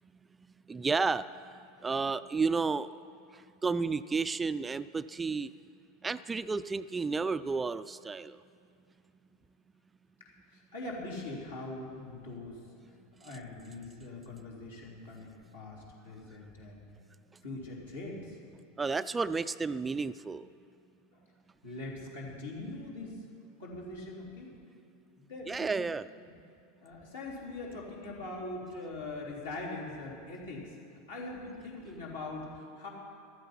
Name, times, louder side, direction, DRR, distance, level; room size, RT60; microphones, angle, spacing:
voice 1, 0.7-1.3 1.8-2.9 3.6-5.5 6.0-8.4 18.8-20.5 25.5-26.1, right 4 dB, 15° right, 14 dB, 0.3 m, -31 dB
voice 2, 10.2-12.6 13.2-16.9 17.4-18.4 21.1-21.2 21.6-23.3 23.6-24.5 25.2-25.8 26.2-26.3 26.8-30.8 31.1-32.9, left 2 dB, 80° left, -5 dB, 3.5 m, -42 dB
14.5 x 12.5 x 5.7 m, 2.5 s
figure-of-eight pair, 85°, 0 cm